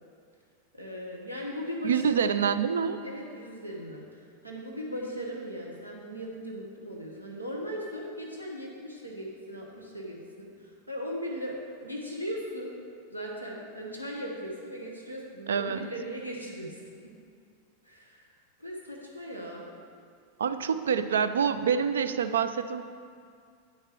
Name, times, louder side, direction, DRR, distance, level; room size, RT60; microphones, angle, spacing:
voice 1, 0.7-2.6 3.0-11.6 11.8-12.8 13.1-16.8 17.8-18.3 18.6-19.7, equal, 85° right, -2 dB, 1.2 m, -38 dB
voice 2, 1.8-3.0 15.5-15.9 20.4-22.8, right 7 dB, 65° right, 11 dB, 0.4 m, -26 dB
8.4 x 6.6 x 4.6 m, 2.2 s
figure-of-eight pair, 90°, 0 cm